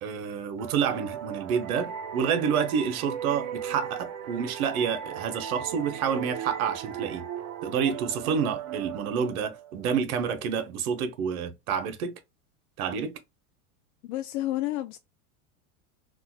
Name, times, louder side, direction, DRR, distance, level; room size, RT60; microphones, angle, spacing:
voice 1, 0.0-7.3 7.6-12.2 12.8-13.1, right 7 dB, 75° right, 0.9 m, -28 dB
sound 1, 0.6-10.0, right 9 dB, 45° right, 0.6 m, -38 dB
voice 2, 14.0-15.0, left 15 dB, 75° left, 0.5 m, -30 dB
3.6 x 2.2 x 2.4 m
supercardioid pair, 120°, 44 cm